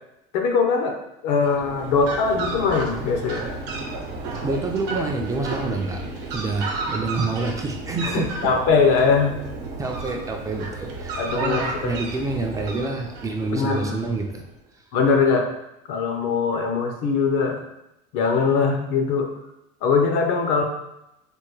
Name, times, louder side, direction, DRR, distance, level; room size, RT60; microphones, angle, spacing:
voice 1, 0.3-1.0 1.2-3.5 8.0-9.4 11.2-11.9 13.5-14.0 14.9-15.5 15.9-17.6 18.1-19.3 19.8-20.6, left 5 dB, 70° left, 3 dB, 0.6 m, -21 dB
Fowl, 1.3-14.4, right 3 dB, 65° right, 0.8 m, -32 dB
voice 2, 4.4-8.5 9.8-14.4, right 3 dB, 15° right, 2 dB, 0.3 m, -28 dB
3.4 x 2.2 x 3.1 m, 0.87 s
supercardioid pair, 120°, 19 cm